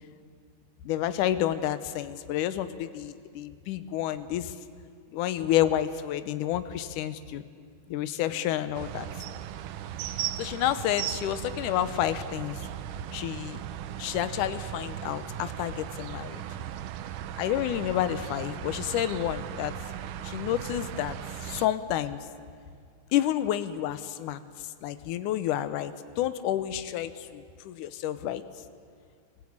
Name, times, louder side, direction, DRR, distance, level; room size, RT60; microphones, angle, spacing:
voice 1, 0.8-4.6 5.1-7.4 7.9-9.1 10.4-12.6 13.1-13.6 14.0-16.4 17.4-19.8 20.2-21.2 21.4-22.3 23.1-24.4 24.8-28.4, left 12 dB, 80° left, 11 dB, 2.4 m, -29 dB
sound 1, 8.7-21.7, right 11 dB, 90° right, 2.3 m, -37 dB
23.5 x 16.5 x 8.7 m, 2.2 s
omnidirectional pair, 3.6 m